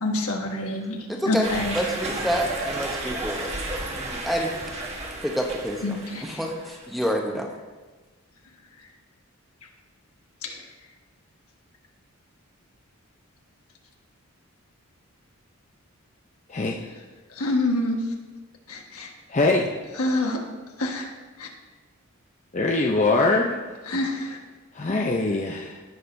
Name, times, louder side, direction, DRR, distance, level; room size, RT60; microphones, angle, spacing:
voice 1, 0.0-1.7 5.8-6.4 10.4-10.6 17.3-18.0 18.7-19.1 20.0-20.4 20.8-21.1 21.4-21.5 23.9-24.4, left 2 dB, 80° left, 1 dB, 1.3 m, -27 dB
voice 2, 1.1-1.5 1.7-3.5 3.9-4.6 5.2-7.5, equal, ahead, 0 dB, 0.8 m, -28 dB
sound 1, 1.4-6.9, right 2 dB, 30° right, 1.2 m, -33 dB
voice 3, 16.5-16.8 19.3-19.7 22.5-23.6 24.7-25.8, left 2 dB, 30° left, 0 dB, 0.5 m, -22 dB
16.5 x 6.4 x 2.6 m, 1.3 s
head